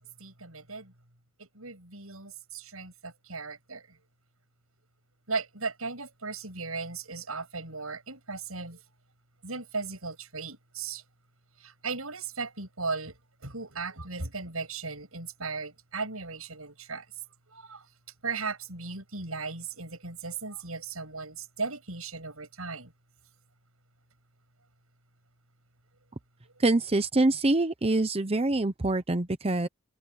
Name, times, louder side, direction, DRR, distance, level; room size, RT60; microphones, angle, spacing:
voice 1, 0.2-0.9 1.4-4.0 5.3-8.8 9.4-11.0 11.6-17.1 17.5-17.9 18.2-22.9, right 4 dB, 85° right, 7.1 m, -37 dB
voice 2, 26.6-29.7, right 2 dB, 30° right, 0.8 m, -25 dB
head